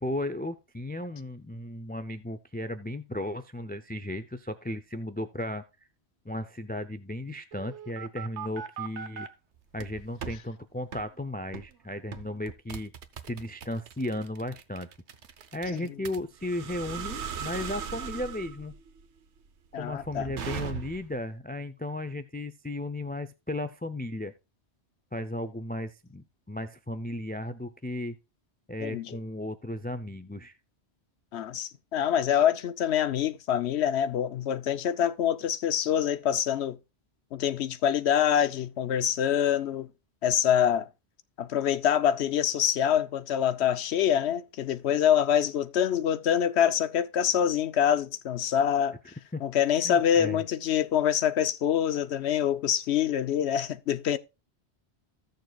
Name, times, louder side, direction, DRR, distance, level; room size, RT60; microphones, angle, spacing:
voice 1, 0.0-5.6 6.2-9.3 9.7-12.9 13.3-14.9 15.5-18.8 19.8-24.3 25.1-28.2 28.7-30.5 49.3-49.4 49.8-50.4, left 1 dB, 15° left, 0.4 m, -35 dB
sound 1, 7.5-9.3 9.8-10.4 10.9-11.1 11.5-11.7 12.1-21.2, right 7 dB, 90° right, 1.2 m, -39 dB
voice 2, 19.7-20.3 28.8-29.2 31.3-36.8 37.3-39.9 40.2-40.9 41.4-49.0 49.4-54.2, left 9 dB, 75° left, 1.0 m, -25 dB
15.5 x 6.6 x 2.3 m
omnidirectional pair, 1.1 m